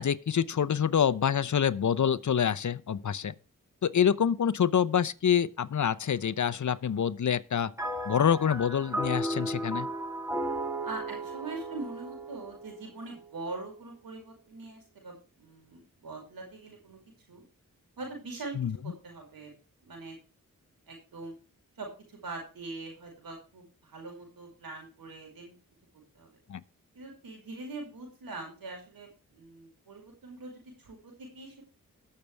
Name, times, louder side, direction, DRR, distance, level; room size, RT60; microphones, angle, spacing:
voice 1, 0.0-3.3 3.8-7.7 8.1-9.9 18.6-18.8 26.5-26.6, left 8 dB, 60° left, 0.8 m, -26 dB
sound 1, 7.8-13.3, right 1 dB, 10° right, 2.7 m, -35 dB
voice 2, 10.8-17.0 17.3-17.4 18.0-18.6 18.8-19.5 19.8-20.2 20.9-21.3 21.8-25.5 26.1-26.4 26.9-31.6, right 3 dB, 90° right, 5.0 m, -42 dB
19.5 x 6.8 x 3.4 m
cardioid pair, 45°, 34 cm